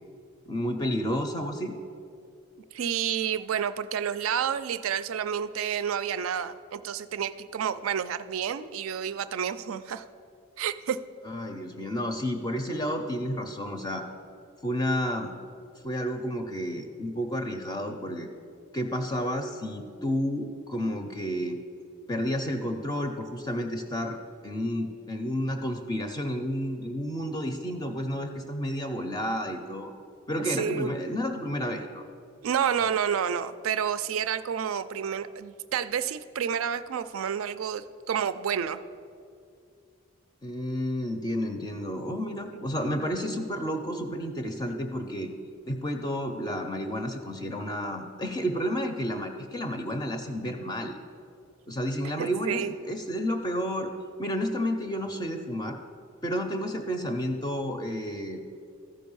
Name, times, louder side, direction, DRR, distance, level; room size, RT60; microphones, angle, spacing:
voice 1, 0.5-1.7 11.3-14.0 14.6-15.3 15.8-18.3 18.7-21.6 22.1-24.2 24.4-29.9 30.3-32.0 40.4-45.3 45.7-51.0 51.7-53.9 54.2-55.8 56.2-58.4, equal, 20° left, 5 dB, 0.4 m, -31 dB
voice 2, 2.7-10.1 10.6-11.0 30.4-31.0 32.4-38.8 52.2-52.7, right 8 dB, 75° right, 13 dB, 0.4 m, -29 dB
13.5 x 5.2 x 5.4 m, 2.4 s
head